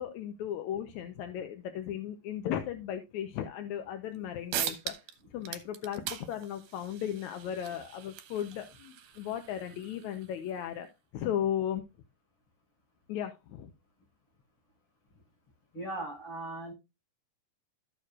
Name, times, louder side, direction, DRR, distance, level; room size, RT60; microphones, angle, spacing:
voice 1, 0.0-4.9 5.3-10.9 11.1-11.8 13.1-13.7, left 10 dB, 70° left, 7 dB, 2.0 m, -36 dB
sound 1, 4.2-4.3 4.5-5.2 5.4-10.6, right 11 dB, 75° right, 2.5 m, -40 dB
voice 2, 15.7-16.7, right 2 dB, 45° left, 1 dB, 6.1 m, -38 dB
14.5 x 6.4 x 2.4 m, 0.25 s
omnidirectional pair, 3.9 m